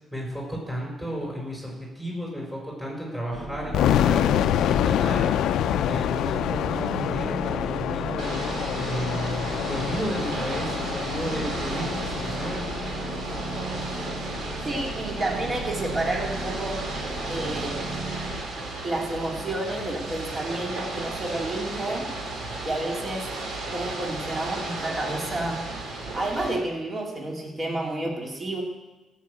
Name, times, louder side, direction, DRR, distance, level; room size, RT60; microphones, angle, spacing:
voice 1, 0.1-5.4 5.8-8.3 8.7-12.7, equal, 10° right, -3 dB, 4.8 m, -33 dB
sound 1, 3.3-18.3, right 2 dB, 50° right, 5.0 m, -36 dB
sound 2, 3.7-14.6, left 10 dB, 80° left, 0.5 m, -27 dB
Ocean / Boat Water vehicle, 8.2-26.6, right 2 dB, 70° right, 2.9 m, -34 dB
voice 2, 14.6-16.9 17.3-17.9 18.8-22.1 22.6-23.3 23.7-25.6 26.1-28.6, right 2 dB, 30° right, -1 dB, 2.8 m, -30 dB
15.5 x 6.4 x 8.2 m, 1.2 s
cardioid pair, 90°, 0 cm